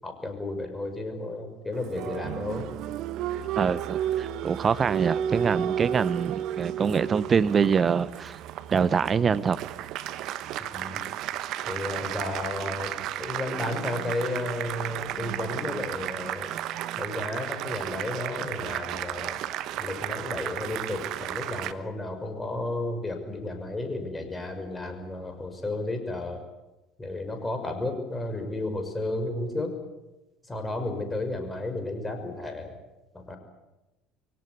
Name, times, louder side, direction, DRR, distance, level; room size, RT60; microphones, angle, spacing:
voice 1, 0.0-2.7 10.7-11.0 11.7-16.5 17.0-19.4 19.8-26.4 27.0-29.7 30.4-32.8 33.1-33.4, left 2 dB, 15° left, 6.2 m, -33 dB
Applause, 1.7-21.7, right 11 dB, 60° right, 1.2 m, -33 dB
voice 2, 3.6-8.4 8.7-9.6, right 6 dB, 35° right, 0.9 m, -25 dB
24.0 x 18.0 x 9.8 m
hypercardioid pair, 65°, 0 cm